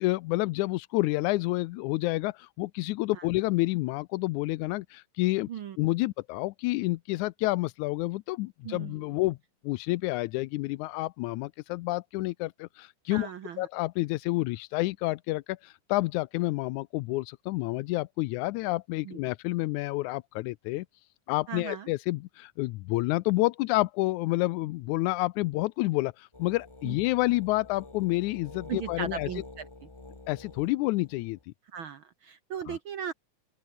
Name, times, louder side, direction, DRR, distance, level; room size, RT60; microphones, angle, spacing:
voice 1, 0.0-5.5 5.8-9.4 9.6-13.3 13.6-20.9 21.3-29.3 30.3-31.4 32.7-32.8, left 20 dB, 80° left, 1.9 m, -29 dB
voice 2, 13.1-13.7 19.0-19.2 21.5-21.9 26.8-27.0 28.7-29.6 31.7-33.1, right 8 dB, 65° right, 1.3 m, -37 dB
sound 1, 26.3-31.4, left 2 dB, 20° left, 0.8 m, -47 dB
open air
omnidirectional pair, 3.5 m